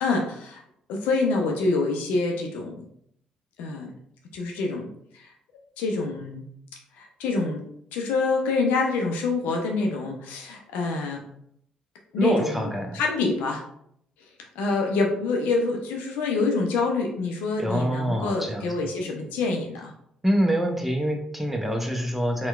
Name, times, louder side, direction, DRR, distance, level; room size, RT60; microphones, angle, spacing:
voice 1, 0.0-0.6 0.9-2.8 3.6-3.9 4.3-5.3 5.8-6.4 7.0-7.6 7.9-11.2 12.1-13.6 14.6-19.9, left 3 dB, 70° left, 1 dB, 0.5 m, -26 dB
voice 2, 12.2-13.0 17.6-18.7 20.2-22.5, equal, 5° right, 3 dB, 0.6 m, -25 dB
4.3 x 2.2 x 2.3 m, 0.72 s
figure-of-eight pair, 45°, 3 cm